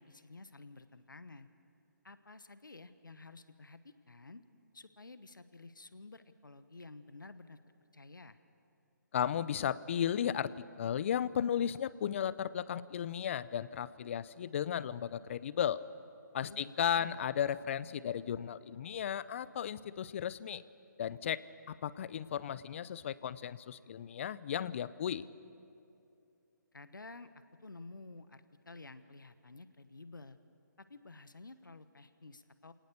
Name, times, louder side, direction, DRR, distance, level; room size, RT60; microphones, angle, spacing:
voice 1, 0.0-1.5 2.0-4.4 4.7-7.6 7.9-8.4 16.5-17.2 26.7-30.4 30.8-32.7, left 3 dB, 90° left, 12 dB, 1.1 m, -52 dB
voice 2, 9.1-10.5 10.8-15.8 16.3-20.6 21.0-25.2, left 9 dB, 40° left, 18 dB, 0.6 m, -35 dB
27.5 x 18.5 x 6.8 m, 2.7 s
figure-of-eight pair, 145°, 10 cm